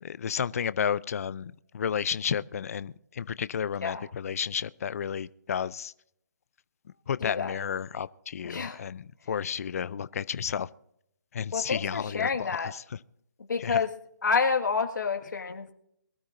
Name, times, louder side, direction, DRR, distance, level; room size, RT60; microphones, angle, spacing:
voice 1, 0.0-5.9 7.1-10.7 11.3-13.0 13.6-13.8, left 7 dB, 55° left, 0.5 m, -32 dB
voice 2, 7.2-7.5 8.4-8.8 11.5-12.7 13.5-13.9 14.2-15.7, left 5 dB, 90° left, 1.9 m, -28 dB
23.0 x 13.0 x 2.6 m
hypercardioid pair, 160°, 10 cm